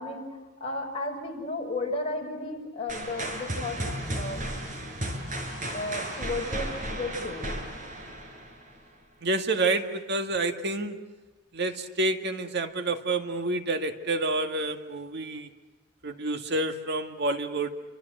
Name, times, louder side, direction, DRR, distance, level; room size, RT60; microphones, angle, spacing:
voice 1, 0.0-3.8 4.1-4.4 5.7-7.5, left 2 dB, 30° left, 0 dB, 6.2 m, -34 dB
sound 1, 2.9-8.8, right 1 dB, 45° right, 6.1 m, -34 dB
voice 2, 9.2-11.0 11.5-15.5 16.0-17.7, right 2 dB, 60° right, 7 dB, 2.0 m, -28 dB
29.0 x 25.0 x 8.1 m, 1.2 s
head